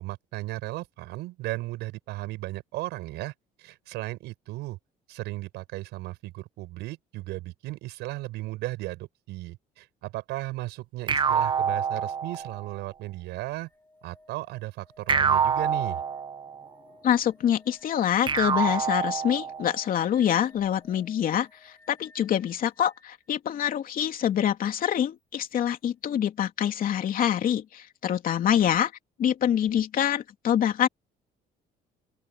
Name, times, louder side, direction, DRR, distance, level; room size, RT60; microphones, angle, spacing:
voice 1, 0.0-3.3 3.6-4.8 5.1-13.7 14.0-16.0, right 18 dB, 90° right, 7.7 m, -35 dB
sound 1, 11.1-12.7 15.1-16.7 18.3-19.8, right 6 dB, 30° right, 0.9 m, -26 dB
sound 2, 13.3-23.1 25.4-25.5, left 2 dB, 15° left, 7.6 m, -57 dB
voice 2, 17.0-28.9 29.2-30.9, left 10 dB, 55° left, 3.0 m, -25 dB
open air
cardioid pair, 110°, 17 cm